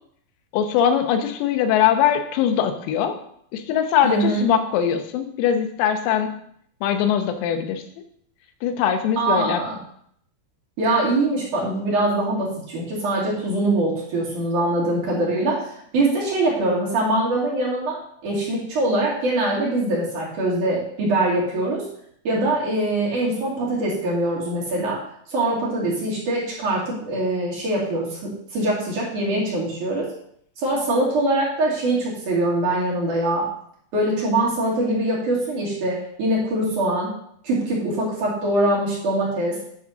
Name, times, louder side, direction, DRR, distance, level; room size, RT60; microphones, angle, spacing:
voice 1, 0.5-3.2 3.5-6.3 6.8-7.8 8.6-9.6, left 9 dB, 90° left, 6 dB, 3.7 m, -21 dB
voice 2, 4.0-4.4 9.2-9.8 10.8-18.0 18.2-21.8 22.2-25.0 25.3-30.1 30.6-33.5 33.9-37.1 37.4-39.6, right 2 dB, 45° right, -5 dB, 3.2 m, -23 dB
10.0 x 4.2 x 6.3 m, 0.67 s
omnidirectional pair, 6.0 m